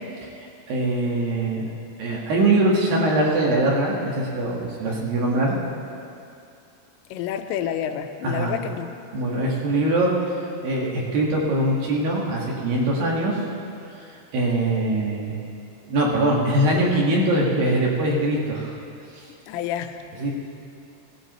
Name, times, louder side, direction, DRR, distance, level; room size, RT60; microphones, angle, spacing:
voice 1, 0.7-1.7 2.0-5.6 8.2-8.6 9.1-10.1 10.6-13.4 13.9-15.4 15.9-18.8 19.1-19.3 20.2-20.3, right 1 dB, 60° right, -3 dB, 2.9 m, -22 dB
voice 2, 7.1-8.9 19.5-20.0, left 9 dB, 85° left, 7 dB, 2.9 m, -29 dB
18.0 x 16.0 x 3.0 m, 2.5 s
omnidirectional pair, 5.2 m